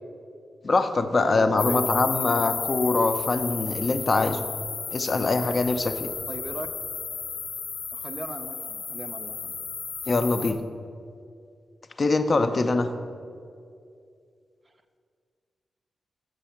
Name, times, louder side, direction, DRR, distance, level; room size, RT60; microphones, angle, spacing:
voice 1, 0.6-4.4 4.9-6.1 10.1-10.6 12.0-12.9, left 3 dB, 35° left, 8 dB, 0.4 m, -23 dB
voice 2, 1.2-2.1 6.3-6.7 7.9-9.5 12.3-12.9, right 2 dB, 25° right, 7 dB, 0.4 m, -38 dB
sound 1, 1.6-10.5, left 6 dB, 90° left, 0.7 m, -33 dB
6.9 x 6.3 x 5.7 m, 2.3 s
wide cardioid pair, 155°, 0 cm